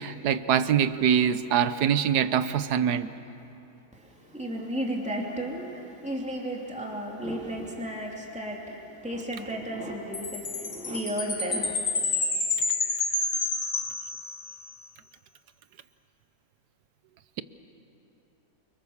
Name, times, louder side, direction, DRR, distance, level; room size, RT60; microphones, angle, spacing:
voice 1, 0.0-3.1, right 8 dB, 80° right, 13 dB, 1.4 m, -24 dB
voice 2, 3.9-11.7, equal, 5° right, -1 dB, 2.9 m, -34 dB
Chime, 10.1-14.6, left 3 dB, 60° left, 2.9 m, -29 dB
29.0 x 24.0 x 7.2 m, 2.9 s
omnidirectional pair, 1.7 m